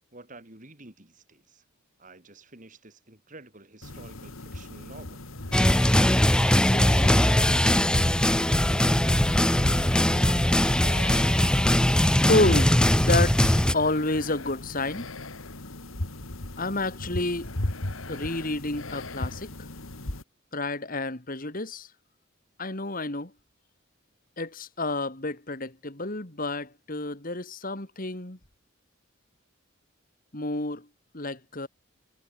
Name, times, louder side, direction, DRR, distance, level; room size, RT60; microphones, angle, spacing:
voice 1, 0.1-1.6 2.0-5.2, right 2 dB, 40° right, 4.7 m, -48 dB
sound 1, 3.8-20.2, left 1 dB, 85° left, 2.7 m, -37 dB
sound 2, 5.5-13.7, left 1 dB, 5° left, 0.5 m, -21 dB
voice 2, 12.3-15.1 16.6-17.5 18.1-19.5 20.5-21.9 22.6-23.3 24.4-28.4 30.3-30.9 31.1-31.7, left 2 dB, 45° left, 2.7 m, -29 dB
head